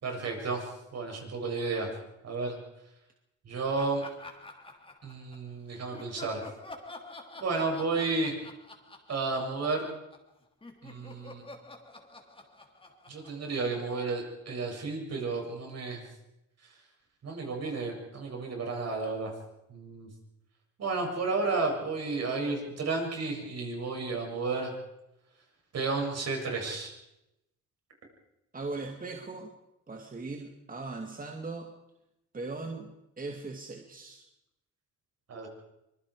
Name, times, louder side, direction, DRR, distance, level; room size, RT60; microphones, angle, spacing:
voice 1, 0.0-1.9 2.2-2.6 3.5-4.0 5.0-6.4 7.4-8.3 9.1-9.9 10.8-11.4 13.1-16.0 17.2-19.3 19.7-20.1 20.8-24.7 25.7-26.9 35.3-35.5, right 3 dB, 55° right, 1 dB, 7.3 m, -32 dB
Laughter, 3.8-5.5 5.9-10.3 10.6-14.2, left 2 dB, 15° left, 3.4 m, -48 dB
voice 2, 28.5-29.5 29.9-31.7 32.3-34.2, right 3 dB, 30° right, 3 dB, 2.3 m, -39 dB
24.5 x 22.0 x 4.9 m, 0.89 s
cardioid pair, 90°, 30 cm